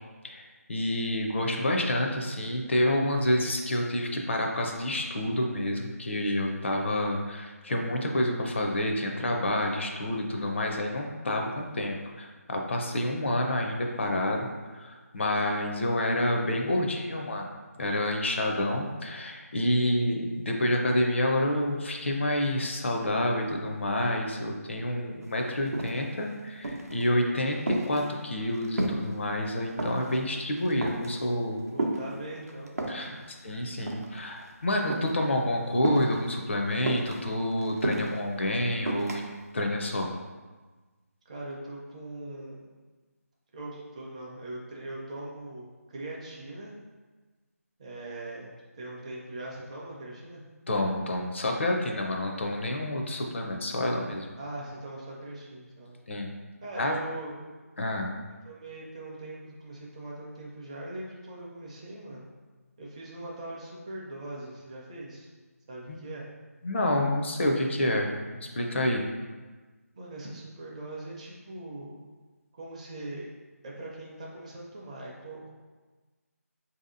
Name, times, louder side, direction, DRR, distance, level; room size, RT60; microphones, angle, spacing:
voice 1, 0.2-17.5 17.8-31.6 32.9-33.2 33.4-39.2 39.5-40.1 50.7-54.3 56.1-56.3 56.8-57.0 57.8-58.1 65.9-66.0 66.6-69.0, left 1 dB, 50° left, 1 dB, 0.5 m, -28 dB
sound 1, 25.2-25.3 25.6-26.2 26.6-27.0 27.4-29.2 29.4-30.2 30.6-31.2 31.8-33.1 33.7-34.5 34.8-35.1 35.8-36.3 36.9-38.2 38.9-39.2, right 2 dB, 70° right, 0.6 m, -31 dB
voice 2, 31.7-33.2 41.3-42.6 43.5-46.7 47.8-50.4 54.4-56.0 56.6-57.5 58.4-62.2 62.8-65.3 65.7-66.3 69.9-72.0 72.5-73.2 73.6-75.5, right 2 dB, 25° right, -4 dB, 0.5 m, -41 dB
4.6 x 2.7 x 2.5 m, 1.3 s
figure-of-eight pair, 160°, 9 cm